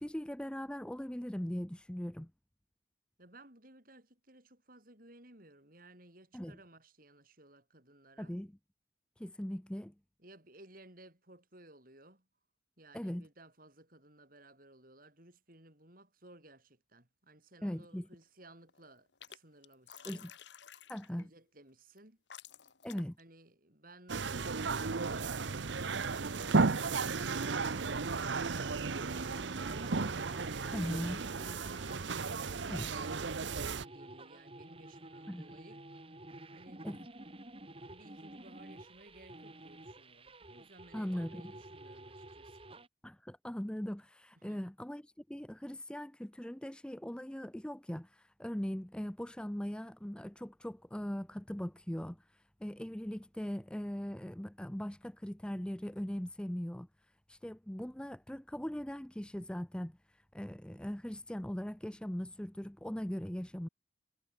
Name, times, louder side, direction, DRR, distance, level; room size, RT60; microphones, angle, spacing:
voice 1, 0.0-2.3 6.3-6.6 8.2-8.5 9.2-9.9 12.9-13.2 17.6-18.1 20.1-20.3 20.9-21.3 22.8-23.2 30.7-31.2 32.7-32.9 35.3-35.4 36.8-37.1 40.9-41.5 43.0-56.9 57.3-63.7, equal, 5° left, 0.5 m, -40 dB
voice 2, 3.2-8.4 10.2-12.3 12.8-20.3 21.2-22.2 23.2-27.9 30.4-35.8 36.5-36.9 37.9-42.6 44.4-44.6, right 1 dB, 45° right, 7.2 m, -58 dB
sound 1, 17.7-18.2 18.5-19.4 19.6-21.3 22.0-22.1 22.3-23.2, left 9 dB, 65° left, 1.3 m, -52 dB
sound 2, 24.1-33.9, right 4 dB, 70° right, 0.9 m, -34 dB
sound 3, 26.3-42.9, right 2 dB, 30° right, 2.4 m, -51 dB
head